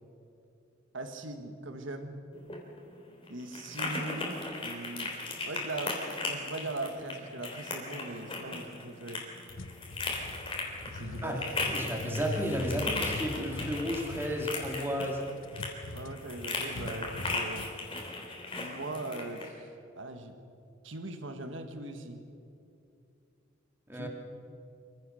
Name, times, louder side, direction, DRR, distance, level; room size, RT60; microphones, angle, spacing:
voice 1, 0.9-2.2 3.3-5.1 5.4-9.3 10.8-11.7 15.6-17.7 18.6-19.7 19.9-20.4 20.8-22.2 23.9-24.1, right 2 dB, 70° right, 6 dB, 1.7 m, -40 dB
sound 1, 2.3-19.5, left 2 dB, 30° left, 3.5 m, -37 dB
sound 2, 9.5-17.7, left 2 dB, 80° left, 1.0 m, -42 dB
voice 2, 11.7-15.2 23.9-24.1, equal, 10° right, 1 dB, 2.8 m, -33 dB
26.0 x 15.5 x 6.5 m, 2.6 s
head